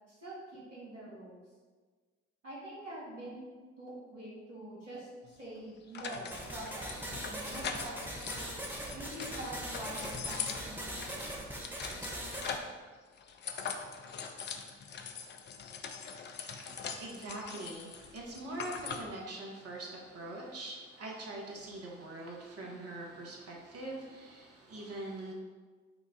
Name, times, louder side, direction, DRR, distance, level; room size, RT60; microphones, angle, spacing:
voice 1, 0.1-1.4 2.4-3.4 3.8-8.1 8.9-11.4 18.9-19.1, right 1 dB, 90° right, -7 dB, 1.0 m, -45 dB
sound 1, 5.3-5.4 5.9-12.8 13.2-19.1, left 6 dB, 30° left, 0.4 m, -42 dB
sound 2, 6.3-12.6, right 1 dB, 5° right, 0.8 m, -41 dB
voice 2, 16.5-25.3, right 2 dB, 40° right, -2 dB, 1.1 m, -43 dB
5.1 x 2.4 x 3.5 m, 1.4 s
figure-of-eight pair, 40°, 36 cm